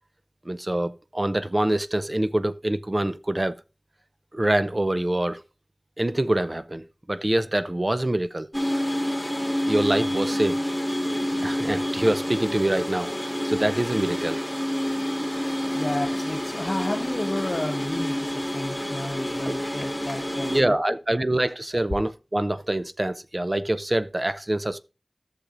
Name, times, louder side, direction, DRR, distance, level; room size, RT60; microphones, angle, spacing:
voice 1, 0.5-3.6 4.3-5.4 6.0-8.5 9.6-10.7 11.4-13.1 13.4-14.5 19.4-19.5 20.4-24.8, right 1 dB, 35° right, 0.5 m, -25 dB
sound 1, 8.5-20.6, equal, 5° left, 2.0 m, -28 dB
voice 2, 15.4-21.3, left 1 dB, 55° left, 1.0 m, -32 dB
13.5 x 6.6 x 2.5 m
wide cardioid pair, 45°, 0 cm